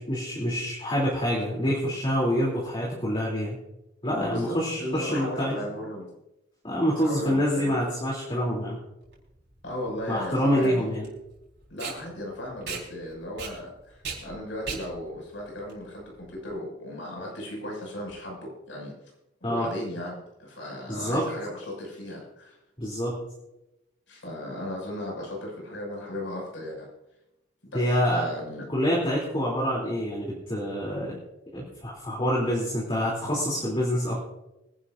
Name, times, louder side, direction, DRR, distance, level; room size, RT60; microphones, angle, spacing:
voice 1, 0.0-3.6 4.0-5.6 6.6-8.8 10.1-11.1 19.4-19.7 20.9-21.2 22.8-23.2 27.7-28.2 28.7-31.2 31.5-34.2, equal, 30° left, -5 dB, 3.2 m, -26 dB
voice 2, 4.2-6.1 7.0-7.8 9.6-10.9 11.7-19.0 19.4-22.6 24.1-26.9 27.6-28.7, left 1 dB, 90° left, -1 dB, 6.3 m, -36 dB
Packing tape duct tape, 9.0-16.5, right 5 dB, 65° right, 4.3 m, -40 dB
24.5 x 11.0 x 2.6 m, 0.93 s
head